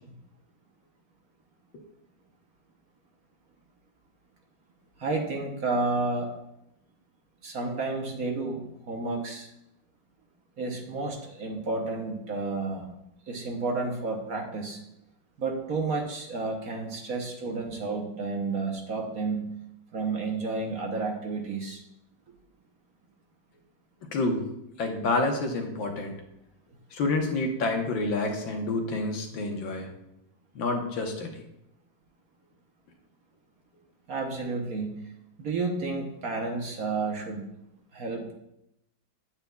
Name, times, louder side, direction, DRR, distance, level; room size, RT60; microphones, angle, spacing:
voice 1, 5.0-6.3 7.4-9.5 10.6-12.9 13.3-14.8 15.4-19.5 19.9-21.8 34.1-35.0 35.4-37.4 37.9-38.3, right 3 dB, 55° right, 2 dB, 1.3 m, -31 dB
voice 2, 24.1-24.4 24.8-26.2 26.9-29.9 30.6-31.4, left 2 dB, 75° left, 3 dB, 1.8 m, -28 dB
9.0 x 8.7 x 2.3 m, 0.83 s
omnidirectional pair, 2.1 m